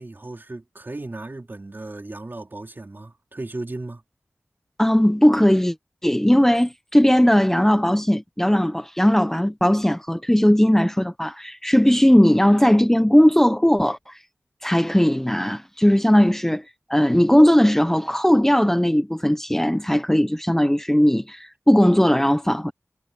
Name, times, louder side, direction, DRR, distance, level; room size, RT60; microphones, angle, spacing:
voice 1, 0.0-4.0, right 2 dB, 40° right, 3.9 m, -35 dB
voice 2, 4.8-5.7 6.0-14.2 14.6-16.6 16.9-22.7, equal, 5° left, 1.0 m, -18 dB
wide cardioid pair, 70°, 5 cm